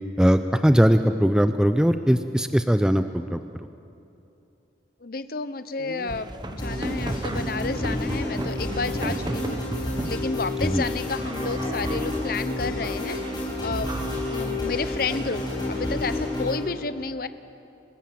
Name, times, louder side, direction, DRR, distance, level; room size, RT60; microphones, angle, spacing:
voice 1, 0.2-3.4 10.6-10.8, equal, 5° right, 9 dB, 0.6 m, -20 dB
voice 2, 5.0-9.6 10.0-13.9 14.2-17.3, left 4 dB, 50° left, 12 dB, 0.9 m, -31 dB
sound 1, 5.8-10.2 11.1-12.4 12.8-13.4 13.9-15.7, right 1 dB, 25° right, 1.2 m, -35 dB
sound 2, 6.6-16.6, left 1 dB, 25° left, 6.0 m, -30 dB
28.5 x 16.5 x 7.7 m, 2.7 s
head